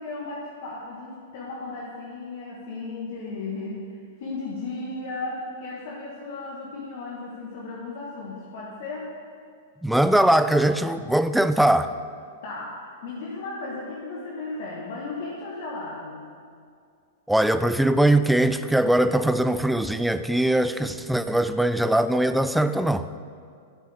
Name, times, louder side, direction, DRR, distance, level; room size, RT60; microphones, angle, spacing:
voice 1, 0.0-9.1 12.4-16.3, left 3 dB, 60° left, 1.5 m, -35 dB
voice 2, 9.8-11.9 17.3-23.1, right 1 dB, ahead, 0.4 m, -21 dB
12.5 x 8.6 x 3.6 m
hypercardioid pair, 110°, 0 cm